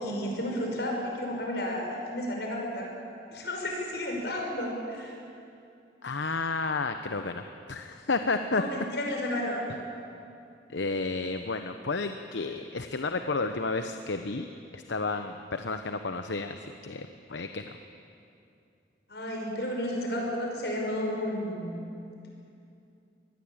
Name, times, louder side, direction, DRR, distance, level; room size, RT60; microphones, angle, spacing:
voice 1, 0.0-2.9 3.3-5.1 8.4-9.8 19.1-21.8, left 1 dB, 65° left, 0 dB, 5.9 m, -32 dB
voice 2, 6.0-8.6 10.7-14.5 14.7-17.8, left 3 dB, 85° left, 7 dB, 0.9 m, -31 dB
24.5 x 20.0 x 8.8 m, 2.6 s
head